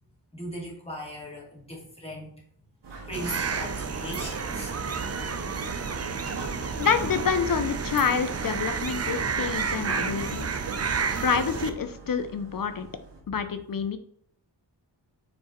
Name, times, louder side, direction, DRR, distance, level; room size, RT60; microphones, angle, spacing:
voice 1, 0.3-2.3 3.1-4.7 13.3-13.4, equal, 15° left, -3 dB, 2.2 m, -38 dB
sound 1, 2.8-13.2, right 3 dB, 75° right, 2.0 m, -42 dB
sound 2, 3.1-11.7, right 5 dB, 35° right, 0.5 m, -31 dB
voice 2, 6.7-10.5 11.2-12.9 13.3-14.0, left 6 dB, 50° left, 9 dB, 0.6 m, -27 dB
7.3 x 4.4 x 3.0 m, 0.66 s
wide cardioid pair, 100°, 43 cm